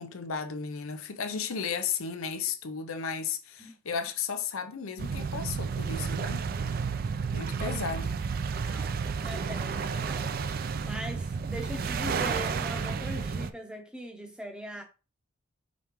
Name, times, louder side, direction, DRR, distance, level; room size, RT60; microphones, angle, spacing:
voice 1, 0.0-6.4 7.3-8.1, left 6 dB, 85° left, 0.6 m, -34 dB
voice 2, 3.6-4.0 7.6-7.8 8.6-10.6 10.8-14.8, equal, 5° right, 0.7 m, -41 dB
sound 1, 5.0-13.5, right 5 dB, 45° right, 0.3 m, -31 dB
5.2 x 3.4 x 3.0 m
head